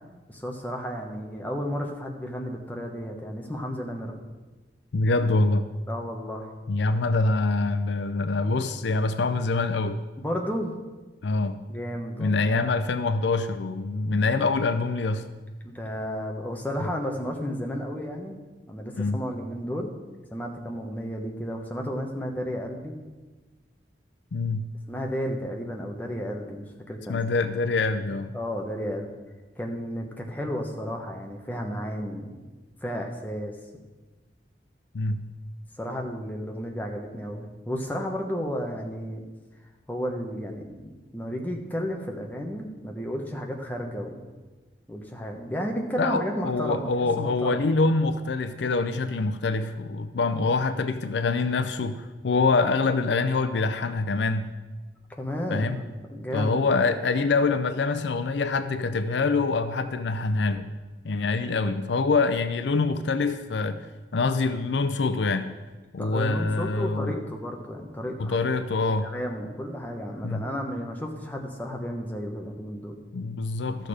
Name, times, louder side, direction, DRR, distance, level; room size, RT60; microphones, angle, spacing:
voice 1, 0.3-4.2 5.9-6.5 10.2-10.7 11.7-12.5 15.6-18.4 18.7-20.0 20.3-23.0 24.9-27.2 28.3-29.1 29.6-32.4 32.8-33.6 35.8-39.2 39.9-44.3 44.9-46.9 47.2-47.6 55.2-56.7 66.0-68.4 69.0-73.0, equal, 10° left, 1 dB, 1.1 m, -33 dB
voice 2, 4.9-5.6 6.7-10.0 11.2-11.6 12.2-15.3 19.0-19.2 24.3-24.7 27.1-28.3 34.9-35.3 46.0-54.5 55.5-55.8 56.3-60.7 61.0-65.5 65.9-67.2 68.2-69.1 70.2-70.4 73.1-73.9, left 3 dB, 85° left, 10 dB, 0.5 m, -25 dB
13.0 x 6.7 x 4.9 m, 1.3 s
head